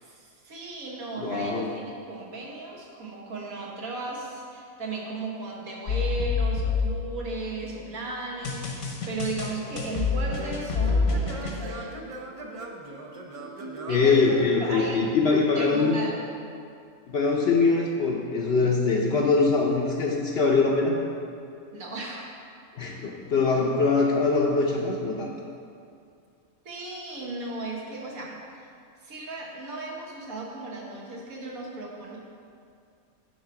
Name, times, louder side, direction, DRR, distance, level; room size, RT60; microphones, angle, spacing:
voice 1, 0.0-12.0 13.9-15.0 15.5-16.2 21.7-22.3 26.6-28.7 29.0-32.2, right 2 dB, 85° right, -3 dB, 1.7 m, -36 dB
voice 2, 1.2-1.7 13.9-16.0 17.1-21.0 22.8-25.3, left 4 dB, 60° left, -1 dB, 0.8 m, -23 dB
sound 1, 5.9-7.7 8.4-11.6, left 4 dB, 75° left, 1.4 m, -27 dB
Singing / Plucked string instrument, 9.1-14.9, right 2 dB, 45° right, 0.4 m, -41 dB
9.5 x 3.7 x 5.8 m, 2.4 s
omnidirectional pair, 1.5 m